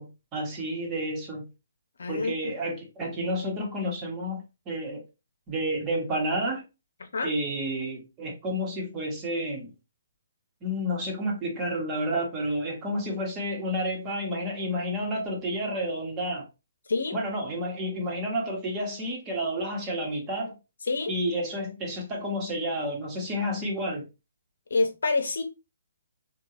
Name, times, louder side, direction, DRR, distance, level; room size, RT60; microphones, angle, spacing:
voice 1, 0.0-1.4 2.1-5.0 5.5-6.6 7.2-9.7 10.6-16.4 17.1-20.6 21.1-24.0, equal, 20° right, 1.1 m, -30 dB
voice 2, 2.0-2.5 7.1-7.3 16.9-17.2 20.9-21.1 24.7-25.4, left 3 dB, 80° left, 0.7 m, -27 dB
3.6 x 2.3 x 2.9 m
hypercardioid pair, 150°, 0 cm